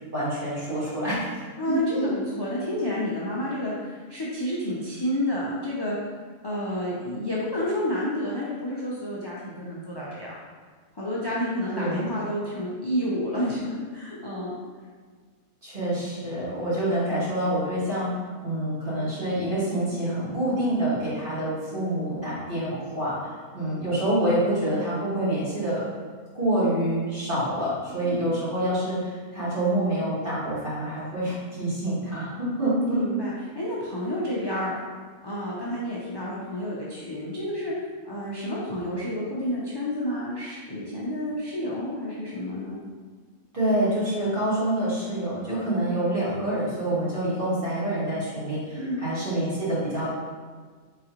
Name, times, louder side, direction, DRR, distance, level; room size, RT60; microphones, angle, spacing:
voice 1, 0.1-1.3 1.7-2.0 11.7-12.1 15.6-18.1 18.4-25.8 26.3-33.0 43.5-50.1, right 1 dB, 40° right, -10 dB, 1.8 m, -27 dB
voice 2, 1.6-6.2 6.4-10.3 10.9-14.5 28.0-28.2 32.8-34.7 35.2-37.7 38.0-42.8 48.7-49.1, left 1 dB, 40° left, -7 dB, 0.3 m, -30 dB
4.0 x 3.8 x 2.9 m, 1.5 s
omnidirectional pair, 1.4 m